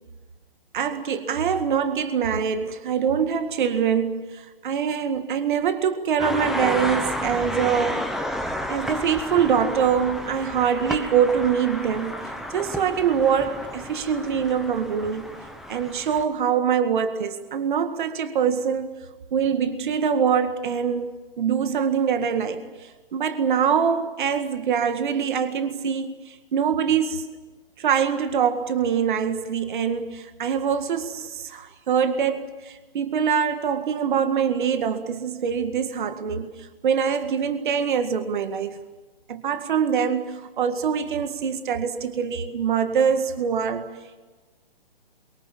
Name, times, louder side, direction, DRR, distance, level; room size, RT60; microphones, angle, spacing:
voice 1, 0.7-8.1 8.7-12.2 12.5-15.3 15.7-18.9 19.3-21.1 21.4-27.3 27.8-38.8 39.3-43.9, right 7 dB, 55° right, 2.0 m, -24 dB
sound 1, 6.2-16.2, equal, ahead, 1.2 m, -32 dB
27.5 x 24.0 x 7.4 m
hypercardioid pair, 150°, 30 cm